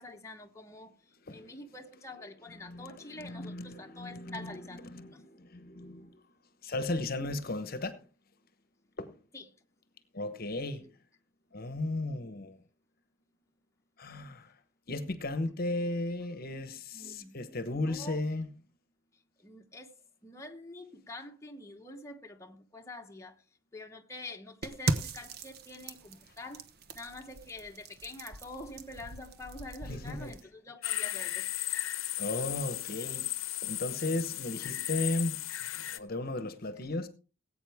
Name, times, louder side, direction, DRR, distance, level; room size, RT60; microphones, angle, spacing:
voice 1, 0.0-5.2 9.3-9.5 16.9-17.4 17.6-18.2 19.1-23.4 23.7-31.9, left 2 dB, 15° left, 1.1 m, -46 dB
voice 2, 2.6-4.5 4.9-6.2 6.6-8.0 9.0-9.2 10.1-10.9 11.5-12.6 14.0-14.5 14.9-18.5 29.9-30.3 32.2-33.3 33.6-35.4 35.7-37.1, left 2 dB, 45° left, 1.0 m, -35 dB
sound 1, 24.6-30.4, right 3 dB, 50° right, 1.0 m, -38 dB
sound 2, 30.8-36.0, left 15 dB, 80° left, 0.8 m, -35 dB
19.0 x 8.6 x 3.5 m
head